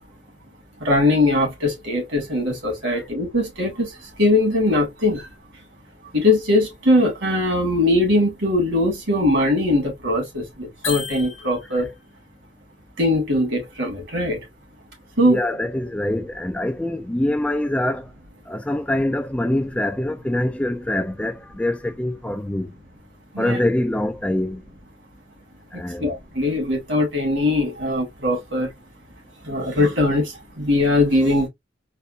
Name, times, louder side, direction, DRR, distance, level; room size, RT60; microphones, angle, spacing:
voice 1, 0.8-3.9 4.2-5.2 6.1-11.9 13.0-14.4 15.2-15.4 23.3-23.6 26.0-28.7 29.5-30.2 30.6-31.5, left 1 dB, 65° right, 2.1 m, -20 dB
sound 1, 10.8-12.0, left 6 dB, 80° left, 1.0 m, -32 dB
voice 2, 15.2-18.1 18.5-22.7 23.4-24.6 25.7-26.1, left 1 dB, 5° left, 0.3 m, -24 dB
4.1 x 2.2 x 2.6 m
head